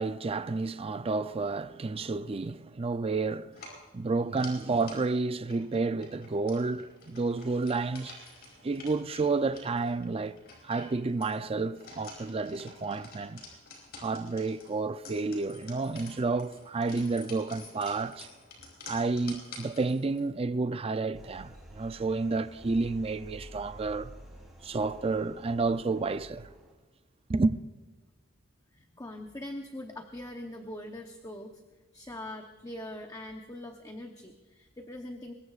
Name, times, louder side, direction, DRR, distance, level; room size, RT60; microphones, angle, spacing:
voice 1, 0.0-3.6 3.9-8.2 8.6-10.4 10.6-13.4 14.0-18.3 18.9-24.1 24.6-26.5 27.3-27.6, right 3 dB, 30° right, 0.4 m, -30 dB
sound 1, 3.5-20.3, left 3 dB, 55° left, 5.2 m, -50 dB
sound 2, 21.1-26.7, right 1 dB, ahead, 3.4 m, -50 dB
voice 2, 28.7-31.6 31.9-35.3, left 1 dB, 20° left, 0.9 m, -42 dB
24.0 x 20.5 x 2.4 m
head